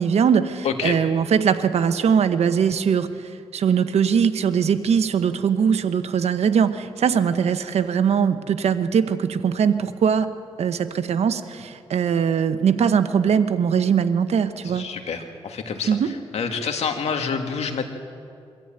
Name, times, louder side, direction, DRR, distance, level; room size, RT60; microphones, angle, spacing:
voice 1, 0.0-10.3 10.6-14.9 15.9-16.1, right 7 dB, 75° right, 10 dB, 1.0 m, -21 dB
voice 2, 0.6-1.0 14.6-17.9, left 6 dB, 80° left, 5 dB, 2.1 m, -28 dB
23.5 x 14.0 x 8.9 m, 2.4 s
cardioid pair, 75°, 11 cm